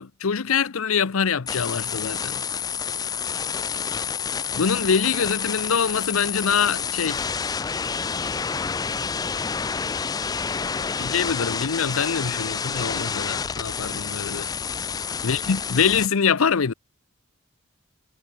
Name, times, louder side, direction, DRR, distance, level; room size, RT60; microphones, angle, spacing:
voice 1, 0.0-2.4 4.6-7.3 11.0-14.5 15.2-16.7, left 6 dB, 85° left, 0.7 m, -24 dB
sound 1, 1.5-16.1, left 6 dB, 20° left, 0.3 m, -29 dB
voice 2, 3.5-4.3 10.4-11.1 15.2-15.7, left 2 dB, 60° left, 7.2 m, -50 dB
head